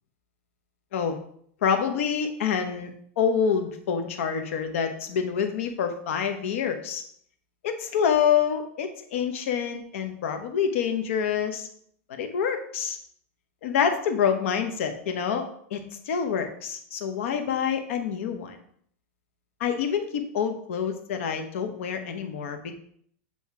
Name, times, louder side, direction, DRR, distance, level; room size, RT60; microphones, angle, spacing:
voice 1, 1.6-2.9 3.2-7.0 7.6-11.7 12.1-13.0 13.6-15.8 16.1-18.6 19.6-22.7, left 7 dB, 55° left, 6 dB, 0.9 m, -27 dB
7.7 x 2.8 x 4.7 m, 0.64 s
supercardioid pair, 180°, 8 cm